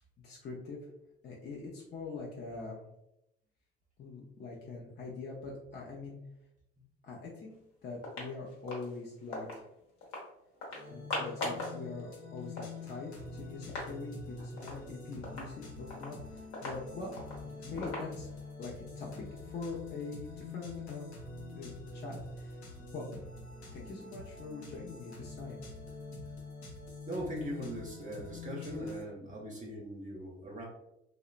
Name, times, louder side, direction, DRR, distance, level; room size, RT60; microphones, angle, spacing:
voice 1, 0.2-0.9 1.2-2.8 4.0-6.2 7.0-7.5 7.8-9.7 10.9-18.3 18.6-19.1 19.4-21.1 21.5-22.6 22.9-23.1 23.7-25.6, left 4 dB, 30° left, -3 dB, 0.6 m, -43 dB
sound 1, 7.5-7.6 7.9-9.6 10.0-10.3 10.6-11.8 12.1-12.2 12.4-13.9 14.2-14.3 14.6-14.8 15.2-18.5, left 2 dB, 55° left, 1.0 m, -41 dB
sound 2, 10.7-29.0, left 3 dB, 85° left, 0.6 m, -46 dB
voice 2, 27.1-30.6, equal, 25° right, -3 dB, 0.7 m, -40 dB
2.8 x 2.0 x 2.4 m, 0.84 s
hypercardioid pair, 55°, 32 cm